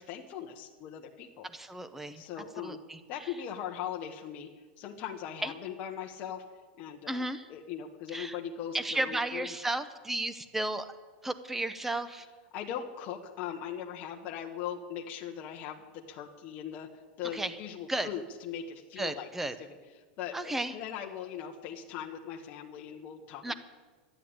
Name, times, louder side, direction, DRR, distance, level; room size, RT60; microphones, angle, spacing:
voice 1, 0.0-1.5 2.1-2.8 3.1-6.4 6.8-9.5 12.5-19.8 20.2-23.5, left 9 dB, 35° left, 1 dB, 1.1 m, -40 dB
voice 2, 1.4-2.2 2.6-3.0 5.4-5.5 7.1-7.5 8.1-8.4 8.7-10.9 11.2-12.3 17.3-17.6 17.9-18.1 19.0-19.5 20.3-20.7 23.4-23.5, right 1 dB, 5° right, 12 dB, 0.7 m, -33 dB
13.0 x 10.0 x 8.7 m, 1.4 s
supercardioid pair, 165°, 5 cm